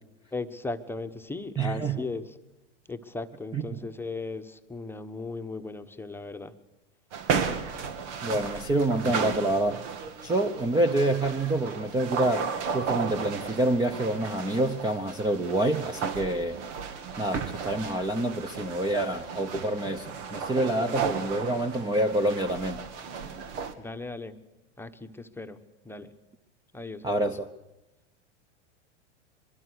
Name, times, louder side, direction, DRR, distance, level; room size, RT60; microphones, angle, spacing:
voice 1, 0.3-2.3 2.9-6.5 23.8-24.4 24.8-26.1 26.7-27.3, left 3 dB, 5° left, 8 dB, 1.2 m, -37 dB
voice 2, 1.6-2.1 3.5-3.9 8.2-9.8 10.2-16.6 17.2-22.8 27.0-27.5, right 1 dB, 10° right, 10 dB, 0.9 m, -27 dB
sound 1, 7.1-23.7, right 6 dB, 75° right, 2.4 m, -34 dB
23.5 x 22.5 x 6.4 m, 1.0 s
hypercardioid pair, 120°, 36 cm